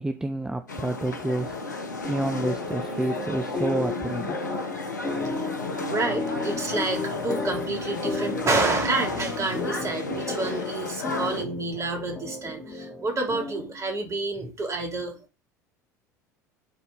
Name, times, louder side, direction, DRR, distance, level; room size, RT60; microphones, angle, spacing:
voice 1, 0.0-4.4, right 1 dB, 10° right, 0.9 m, -29 dB
sound 1, 0.7-11.4, left 3 dB, 85° left, 1.1 m, -33 dB
sound 2, 2.0-13.8, left 3 dB, 20° left, 2.9 m, -34 dB
voice 2, 5.1-15.2, right 3 dB, 30° right, 3.3 m, -29 dB
10.0 x 4.3 x 4.0 m
figure-of-eight pair, 70°, 10 cm